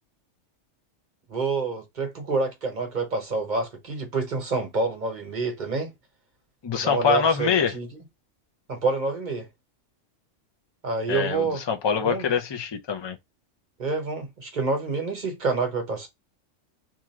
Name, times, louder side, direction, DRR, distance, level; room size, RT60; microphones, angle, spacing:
voice 1, 1.3-5.9 6.7-7.9 8.7-9.5 10.8-11.6 12.0-12.3 13.8-16.1, right 3 dB, 40° right, 1.1 m, -27 dB
voice 2, 6.6-7.7 11.1-13.2, left 6 dB, 35° left, 0.4 m, -24 dB
2.8 x 2.5 x 4.1 m
omnidirectional pair, 1.3 m